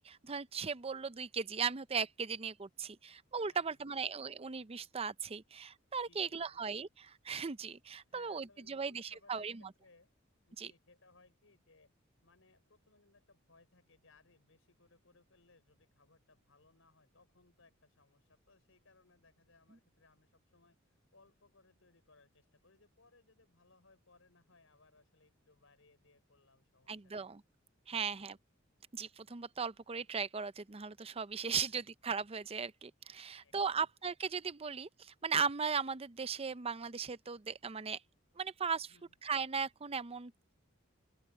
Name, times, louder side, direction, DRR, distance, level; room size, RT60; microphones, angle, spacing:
voice 1, 0.0-9.6 10.6-10.7 26.9-27.4 27.9-28.4 28.9-38.0 38.4-38.9 39.2-40.5, right 6 dB, 30° right, 0.6 m, -37 dB
voice 2, 3.4-4.0 6.0-6.6 8.0-10.1 10.5-11.9 12.2-27.3 27.9-28.4 31.6-31.8 33.3-33.9 38.9-39.1, left 3 dB, 85° left, 5.1 m, -67 dB
open air
head